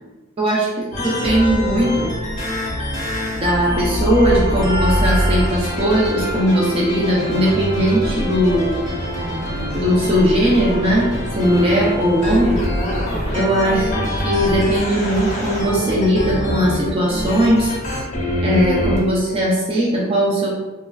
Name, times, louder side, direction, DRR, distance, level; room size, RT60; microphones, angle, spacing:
voice 1, 0.4-2.1 3.3-8.7 9.7-12.6 13.3-17.7 18.4-20.5, equal, 25° right, -5 dB, 0.4 m, -18 dB
sound 1, 0.9-19.0, equal, 35° left, 0.8 m, -24 dB
sound 2, 8.4-14.0, equal, 65° right, 1.4 m, -34 dB
3.0 x 2.4 x 2.2 m, 1.1 s
head